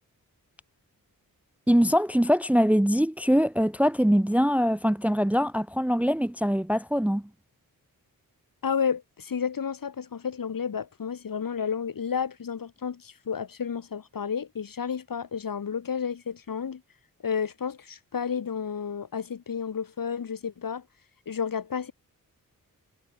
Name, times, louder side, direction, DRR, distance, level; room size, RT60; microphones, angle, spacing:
voice 1, 1.7-7.3, equal, 5° right, 0.7 m, -23 dB
voice 2, 8.6-16.8 17.2-20.8 21.3-21.9, left 7 dB, 65° left, 2.8 m, -31 dB
wide cardioid pair, 85°, 36 cm